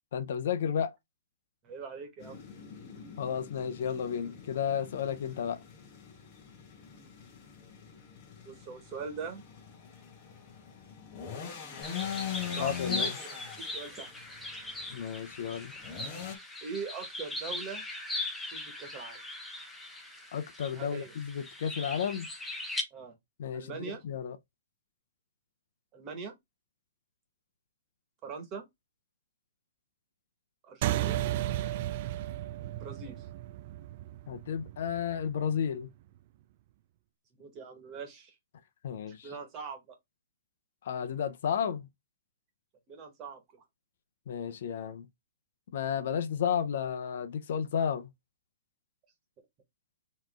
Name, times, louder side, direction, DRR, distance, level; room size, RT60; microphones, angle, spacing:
voice 1, 0.1-0.9 3.2-5.6 12.6-13.2 14.9-15.7 20.3-22.3 23.4-24.4 34.3-35.9 38.8-39.3 40.8-41.9 44.3-45.1 45.7-48.1, left 8 dB, 60° left, 0.7 m, -32 dB
voice 2, 1.6-2.4 6.9-7.1 8.4-9.4 11.6-11.8 12.4-14.1 16.6-17.8 18.5-19.2 20.7-21.1 22.9-23.1 23.5-24.0 25.9-26.3 28.2-28.6 30.6-31.2 32.8-33.3 37.3-38.3 39.1-39.9 42.9-43.6, right 5 dB, 25° right, 1.6 m, -42 dB
sound 1, 2.2-16.3, left 8 dB, 30° left, 1.3 m, -43 dB
sound 2, 11.8-22.8, left 2 dB, 5° left, 0.8 m, -39 dB
sound 3, 30.8-35.6, right 14 dB, 40° right, 0.3 m, -34 dB
4.4 x 3.1 x 3.6 m
hypercardioid pair, 160°, 0 cm